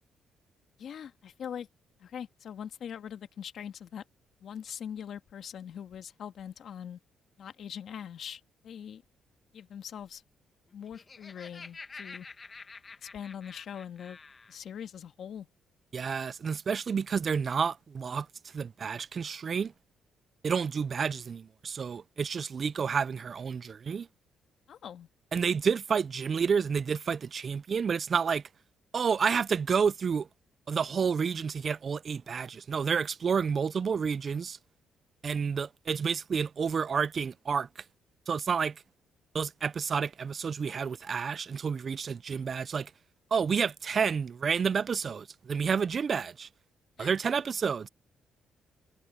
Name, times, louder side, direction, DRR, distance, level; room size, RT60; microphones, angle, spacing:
voice 1, 0.8-1.7 2.0-4.0 4.4-7.0 7.4-9.0 9.5-10.2 10.7-12.3 13.0-14.2 14.5-15.5 24.7-25.1 47.0-47.1, left 8 dB, 65° left, 1.8 m, -42 dB
Laughter, 10.7-14.6, left 4 dB, 30° left, 1.1 m, -48 dB
voice 2, 15.9-18.3 18.5-19.7 20.4-24.1 25.3-28.4 28.9-30.3 30.7-34.6 35.2-37.7 38.3-38.7 39.3-42.9 43.3-46.5 47.0-47.9, right 6 dB, 45° right, 0.4 m, -30 dB
cardioid pair, 90°, 0 cm